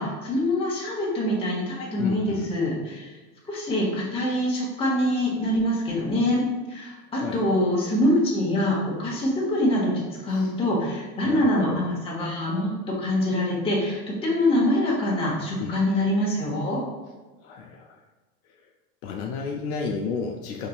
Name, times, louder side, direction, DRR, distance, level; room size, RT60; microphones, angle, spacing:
voice 1, 0.0-3.1 3.5-6.4 6.7-12.7 13.0-16.8, left 1 dB, 15° left, -5 dB, 0.9 m, -24 dB
voice 2, 2.0-2.5 7.1-7.5 10.3-10.5 11.2-11.8 15.6-15.8 17.4-18.0 18.5-18.6 19.0-20.7, left 5 dB, 70° left, 1 dB, 0.6 m, -32 dB
3.8 x 2.9 x 2.3 m, 1.2 s
supercardioid pair, 120°, 43 cm